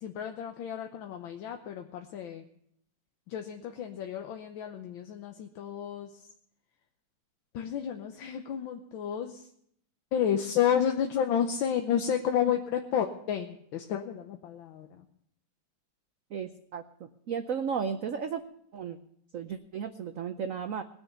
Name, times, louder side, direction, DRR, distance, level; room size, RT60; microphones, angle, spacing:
voice 1, 0.0-2.5 3.3-6.3 7.5-9.5 10.1-15.1, left 8 dB, 80° left, 5 dB, 1.6 m, -31 dB
voice 2, 16.3-18.4 18.7-19.0 19.3-20.8, right 7 dB, 60° right, 7 dB, 0.8 m, -34 dB
20.0 x 6.9 x 6.9 m, 0.71 s
omnidirectional pair, 2.1 m